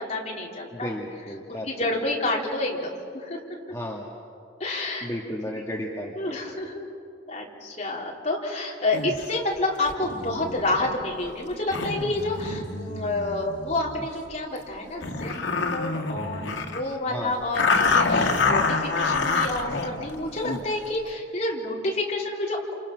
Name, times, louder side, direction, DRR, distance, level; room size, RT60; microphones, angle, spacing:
voice 1, 0.0-1.0 1.6-3.4 4.6-5.1 5.6-5.7 6.2-6.9 7.3-22.7, left 2 dB, 35° left, -2 dB, 4.0 m, -29 dB
voice 2, 0.7-1.9 3.7-4.1 5.0-6.1 17.0-17.4, equal, 15° left, -2 dB, 1.8 m, -33 dB
sound 1, 8.9-9.2 9.9-14.1 14.6-14.7 15.0-16.9 17.5-20.7, left 4 dB, 80° left, 2.1 m, -27 dB
29.0 x 28.0 x 6.4 m, 2.5 s
head